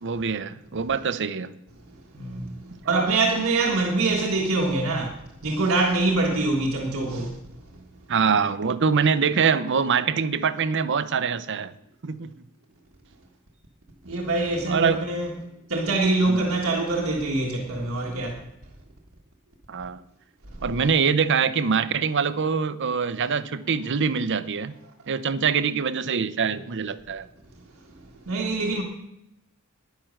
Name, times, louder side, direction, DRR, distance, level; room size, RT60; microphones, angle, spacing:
voice 1, 0.0-1.5 8.1-11.7 12.0-12.3 14.7-15.0 16.3-16.5 19.7-20.0 20.6-24.7 25.1-27.3, right 6 dB, 60° right, 0.7 m, -24 dB
voice 2, 2.1-2.5 2.8-5.1 5.4-7.3 14.0-15.3 15.7-18.3 28.2-28.8, right 2 dB, 75° right, 1.6 m, -24 dB
10.5 x 10.0 x 6.5 m
head